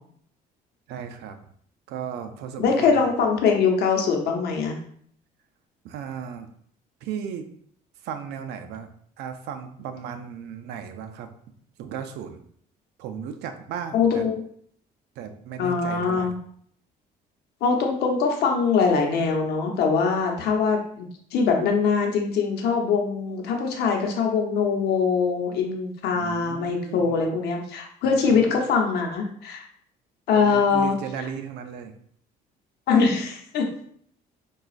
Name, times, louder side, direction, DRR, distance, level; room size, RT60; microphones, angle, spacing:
voice 1, 0.9-1.4 1.9-3.1 5.8-6.5 7.0-7.5 8.0-8.9 9.2-11.3 11.8-12.4 13.0-14.3 15.2-16.3 26.1-27.2 28.0-28.6 30.3-31.9, right 8 dB, 80° right, 8 dB, 0.4 m, -35 dB
voice 2, 2.6-4.8 13.9-14.4 15.6-16.3 17.6-29.6 30.3-31.3 32.9-33.6, left 5 dB, 75° left, 2 dB, 0.8 m, -23 dB
4.9 x 2.3 x 2.4 m, 0.63 s
cardioid pair, 110°, 17 cm